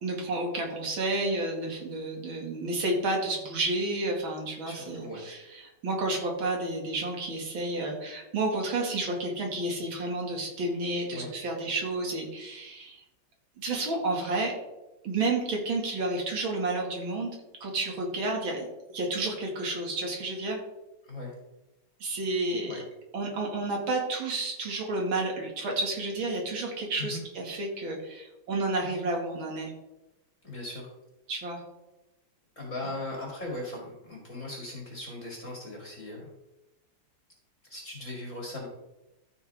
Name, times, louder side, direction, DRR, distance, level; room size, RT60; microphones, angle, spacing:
voice 1, 0.0-13.0 13.6-14.5 15.0-17.3 17.6-20.6 22.0-22.7 23.1-29.7 31.3-31.6 32.8-32.9, right 2 dB, 65° right, 0 dB, 2.9 m, -31 dB
voice 2, 4.6-5.2 11.1-11.3 21.0-21.3 22.6-22.8 27.0-27.2 30.4-30.9 32.6-36.3 37.7-38.7, left 2 dB, 35° left, -2 dB, 2.5 m, -38 dB
14.0 x 6.2 x 3.5 m, 0.97 s
omnidirectional pair, 2.3 m